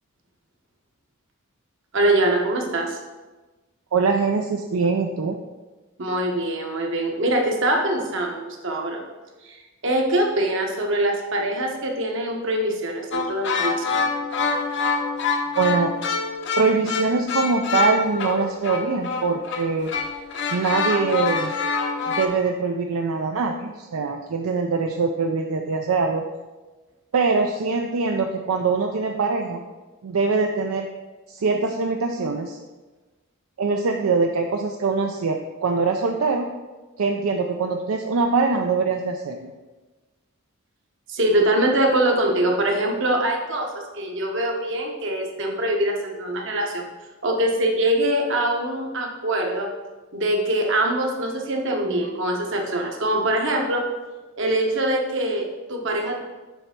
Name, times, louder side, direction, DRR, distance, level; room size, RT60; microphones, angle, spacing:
voice 1, 1.9-3.0 6.0-9.0 9.4-9.6 9.8-14.0 21.9-22.0 41.1-43.7 44.0-46.9 47.2-49.7 50.1-53.8 54.4-56.2, right 1 dB, 55° right, 1 dB, 1.1 m, -23 dB
voice 2, 3.9-5.4 15.5-15.9 16.6-19.9 20.5-21.5 22.1-26.3 27.1-29.6 30.0-30.9 31.3-32.6 33.6-36.5 37.0-39.5, right 4 dB, 75° right, 3 dB, 0.4 m, -23 dB
sound 1, 13.1-22.3, left 4 dB, 55° left, 0.7 m, -26 dB
6.9 x 3.3 x 5.8 m, 1.2 s
head